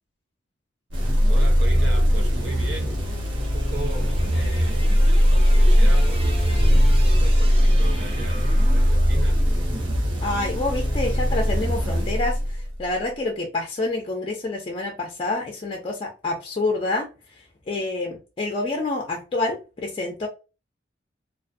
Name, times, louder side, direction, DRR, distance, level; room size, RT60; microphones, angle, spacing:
sound 1, 0.9-12.8, equal, 85° right, 0.9 m, -19 dB
voice 1, 1.3-4.9 5.3-9.4, right 2 dB, 65° right, 0.9 m, -37 dB
sound 2, 2.7-11.0, right 1 dB, 30° right, 0.6 m, -41 dB
voice 2, 10.2-17.1 17.4-20.3, left 2 dB, 30° left, 0.4 m, -28 dB
2.3 x 2.2 x 2.5 m
head